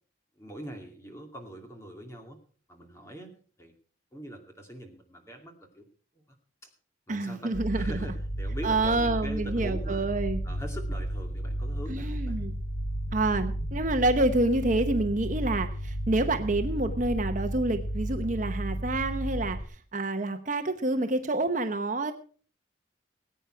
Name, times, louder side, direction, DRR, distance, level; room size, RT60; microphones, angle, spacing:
voice 1, 0.4-2.4 2.7-3.3 3.6-3.7 4.1-5.8 6.6-6.7 7.1-10.1 10.4-12.4, right 1 dB, 15° left, 3 dB, 2.5 m, -43 dB
voice 2, 7.1-8.1 8.6-10.4 11.9-12.5 13.1-19.6 19.9-22.1, right 2 dB, 40° right, 7 dB, 0.9 m, -28 dB
sound 1, 7.5-19.6, equal, 45° left, 2.3 m, -33 dB
19.5 x 9.1 x 4.6 m, 0.42 s
head